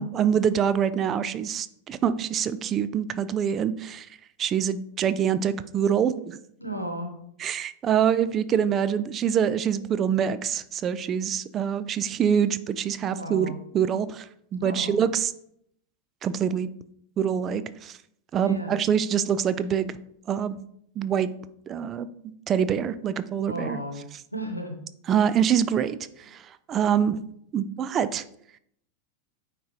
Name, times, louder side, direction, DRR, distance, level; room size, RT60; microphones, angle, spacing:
voice 1, 0.0-4.1 4.4-6.4 7.4-14.3 14.5-15.3 16.2-16.7 17.2-18.0 18.3-19.9 20.3-20.6 21.0-21.3 21.7-22.1 22.5-23.8 25.1-26.0 26.3-26.4 26.7-27.2 27.5-28.3, right 8 dB, 30° right, 14 dB, 0.4 m, -25 dB
voice 2, 6.6-7.2 13.0-13.6 14.6-15.0 18.4-18.8 23.4-24.0 24.3-24.8, right 1 dB, 90° left, 4 dB, 0.9 m, -34 dB
9.2 x 3.8 x 2.9 m, 0.70 s
figure-of-eight pair, 90°, 0 cm